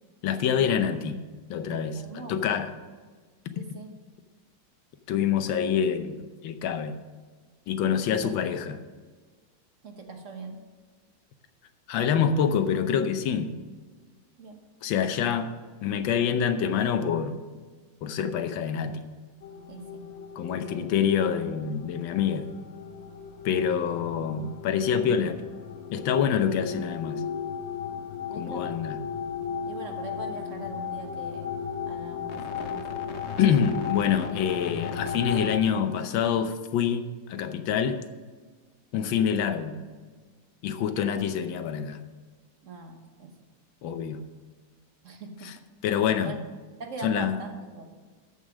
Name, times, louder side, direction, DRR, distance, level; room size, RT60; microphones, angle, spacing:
voice 1, 0.2-1.2 1.5-2.7 5.1-6.9 7.7-8.8 11.9-13.5 14.8-15.5 15.8-17.4 18.0-19.0 20.4-22.5 23.4-25.4 25.9-27.2 28.4-29.0 33.4-38.0 38.9-39.8 40.6-42.0 43.8-44.2 45.4-45.5 45.8-46.4 47.0-47.4, left 8 dB, 90° left, 9 dB, 1.6 m, -26 dB
voice 2, 2.0-2.6 3.5-4.0 8.2-8.4 9.8-10.6 14.4-14.7 19.7-20.1 20.4-20.9 28.3-28.9 29.6-31.5 31.9-32.9 42.6-43.4 45.0-45.5 46.2-46.4 46.8-48.0, right 3 dB, 45° right, 4 dB, 1.3 m, -42 dB
sound 1, 19.4-35.6, left 7 dB, 55° left, 0.7 m, -36 dB
13.5 x 5.5 x 6.2 m, 1.4 s
omnidirectional pair, 2.0 m